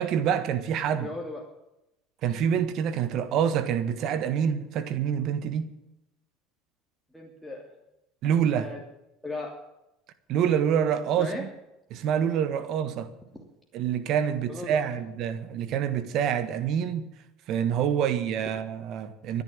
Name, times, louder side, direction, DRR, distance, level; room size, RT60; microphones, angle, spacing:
voice 1, 0.0-1.1 2.2-5.7 8.2-8.7 10.3-11.5 11.9-13.1 13.7-17.1 17.5-19.4, right 8 dB, 60° right, 1.5 m, -26 dB
voice 2, 1.0-1.4 7.1-7.7 8.6-8.8 9.2-9.5 11.2-11.4 13.3-13.4 14.5-14.9, left 2 dB, ahead, 2.8 m, -36 dB
14.0 x 10.5 x 8.8 m
supercardioid pair, 105°, 0 cm